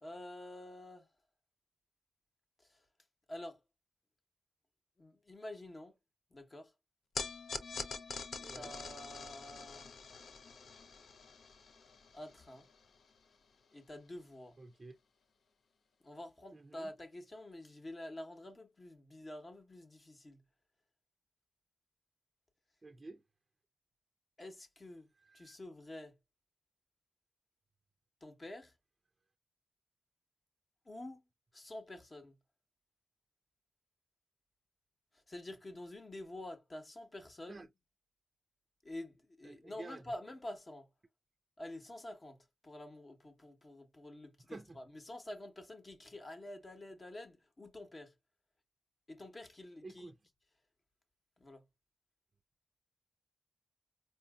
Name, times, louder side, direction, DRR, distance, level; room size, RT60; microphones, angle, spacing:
voice 1, 0.0-1.1 2.7-2.8 3.3-3.6 5.0-6.0 6.3-6.7 8.5-9.9 12.1-12.7 13.7-14.6 16.0-20.4 24.4-26.2 28.2-28.7 30.8-31.2 31.5-32.4 35.1-37.7 38.8-40.9 41.6-48.1 49.1-50.1 51.4-51.6, left 1 dB, 30° left, 0.9 m, -48 dB
sound 1, 7.2-13.6, left 5 dB, 75° left, 0.5 m, -45 dB
voice 2, 8.4-8.7 14.6-15.0 16.5-16.9 22.8-23.2 25.2-25.6 37.5-37.7 39.4-40.0 44.5-44.8 49.8-50.2, right 3 dB, 30° right, 0.4 m, -50 dB
4.3 x 2.7 x 2.3 m
wide cardioid pair, 110°, 0 cm